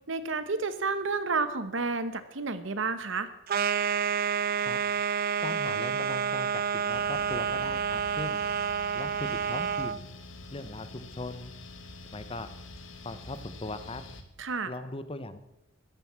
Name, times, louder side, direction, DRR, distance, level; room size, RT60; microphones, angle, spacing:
voice 1, 0.1-3.3 14.4-14.7, right 4 dB, 70° right, 11 dB, 1.0 m, -30 dB
sound 1, 3.5-10.0, right 7 dB, 50° right, 0.5 m, -29 dB
voice 2, 5.4-8.4 8.9-10.1 10.5-11.5 12.1-12.5 13.0-14.0 14.7-15.4, left 2 dB, 30° left, 12 dB, 0.8 m, -39 dB
sound 2, 6.9-14.2, left 2 dB, 70° left, 1.7 m, -46 dB
14.0 x 11.0 x 7.4 m, 0.86 s
head